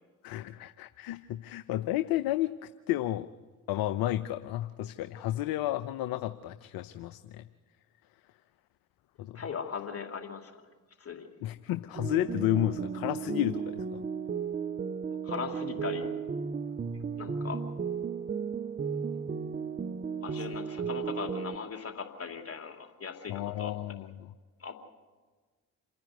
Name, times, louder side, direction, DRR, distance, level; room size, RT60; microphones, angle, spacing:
voice 1, 0.2-3.3 3.7-7.4 9.2-9.4 11.4-14.0 20.4-20.5 23.3-24.3, left 14 dB, 55° left, 14 dB, 0.7 m, -32 dB
voice 2, 9.3-10.5 11.0-11.3 15.2-16.1 17.2-17.6 20.2-23.7 24.6-24.7, left 6 dB, 35° left, 4 dB, 2.8 m, -38 dB
sound 1, 11.9-21.6, right 6 dB, 20° right, 0.6 m, -34 dB
27.0 x 10.5 x 9.4 m, 1.4 s
figure-of-eight pair, 45°, 42 cm